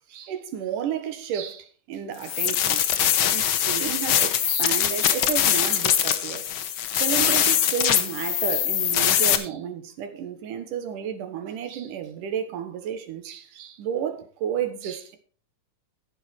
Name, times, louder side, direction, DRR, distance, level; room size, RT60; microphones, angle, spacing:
voice 1, 0.1-6.5 6.9-15.2, right 8 dB, 85° right, 2.9 m, -32 dB
sound 1, 2.2-9.4, left 10 dB, 85° left, 1.1 m, -22 dB
14.0 x 7.3 x 4.5 m
omnidirectional pair, 3.6 m